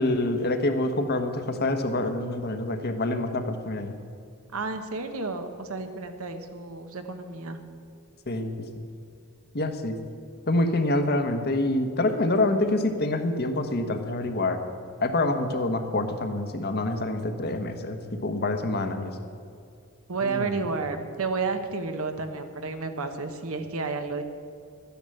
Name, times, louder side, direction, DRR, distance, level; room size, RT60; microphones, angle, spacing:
voice 1, 0.0-3.9 8.3-8.8 9.5-10.0 10.5-14.6 15.0-19.1 20.2-20.6, left 2 dB, 45° left, 6 dB, 1.2 m, -26 dB
voice 2, 4.5-7.6 20.1-24.2, right 4 dB, 70° right, 7 dB, 1.2 m, -31 dB
12.5 x 10.0 x 7.8 m, 2.4 s
head